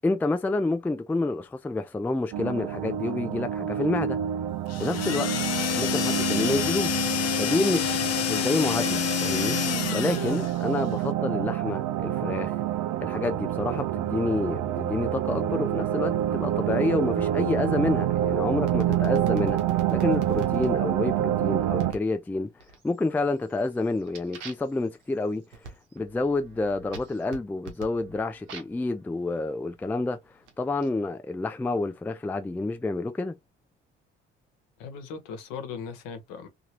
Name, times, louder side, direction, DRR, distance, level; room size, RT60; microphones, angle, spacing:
voice 1, 0.0-4.2 4.8-5.3 5.7-7.0 7.4-9.6 9.9-12.5 13.0-19.6 19.9-22.5 22.8-25.4 26.0-30.2 30.6-33.3, left 2 dB, 5° left, 0.4 m, -28 dB
sound 1, 2.3-21.9, right 11 dB, 55° right, 0.5 m, -28 dB
sound 2, 4.7-10.6, left 12 dB, 45° left, 0.7 m, -28 dB
sound 3, 18.7-20.7 21.8-22.1 22.6-23.1 23.5-28.9 29.6-30.9, right 4 dB, 85° right, 0.9 m, -44 dB
voice 2, 34.8-36.5, left 6 dB, 65° left, 1.0 m, -38 dB
2.9 x 2.5 x 2.8 m
hypercardioid pair, 55°, 35 cm